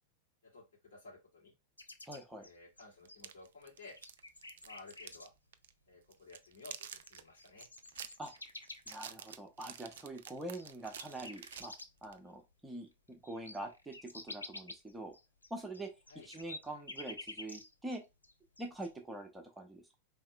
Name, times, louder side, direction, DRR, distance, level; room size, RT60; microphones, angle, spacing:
voice 1, 0.4-1.5 2.4-4.0 4.6-5.3 5.9-7.7 16.1-16.3, left 3 dB, 60° left, -1 dB, 2.2 m, -55 dB
sound 1, 1.8-3.4 3.8-5.3 6.4-6.5 6.7-12.1 12.5-12.6 12.9-18.0 18.2-18.9, left 2 dB, 80° left, 0.4 m, -50 dB
voice 2, 2.1-2.5 8.2-8.3 8.9-11.7 12.0-15.2 15.5-15.9 16.2-18.0 18.6-20.0, right 1 dB, 10° right, 3 dB, 0.9 m, -45 dB
sound 2, 3.1-5.3 5.5-5.7 6.1-12.2, right 9 dB, 60° right, 0.3 m, -49 dB
4.6 x 3.3 x 2.2 m, 0.23 s
figure-of-eight pair, 90°, 0 cm